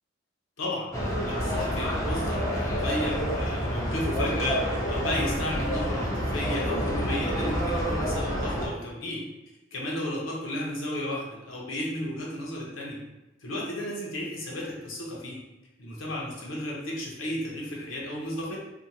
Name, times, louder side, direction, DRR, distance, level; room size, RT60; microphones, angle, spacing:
voice 1, 0.6-0.9 1.2-9.2 9.7-13.0 13.4-15.4 15.8-18.6, left 1 dB, 85° left, -3 dB, 0.8 m, -33 dB
sound 1, 0.9-8.7, equal, 15° left, 0.5 m, -28 dB
2.6 x 2.2 x 2.8 m, 0.99 s
head